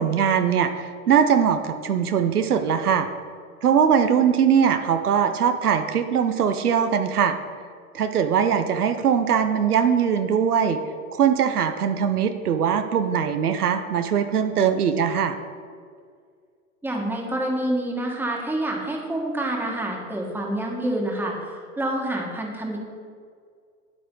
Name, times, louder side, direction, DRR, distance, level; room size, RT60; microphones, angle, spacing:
voice 1, 0.0-3.1 3.6-7.4 7.9-10.8 11.1-15.4, right 7 dB, 85° right, 8 dB, 0.8 m, -21 dB
voice 2, 16.8-22.8, right 1 dB, 5° right, -1 dB, 1.8 m, -27 dB
9.4 x 8.3 x 3.9 m, 2.1 s
hypercardioid pair, 105°, 44 cm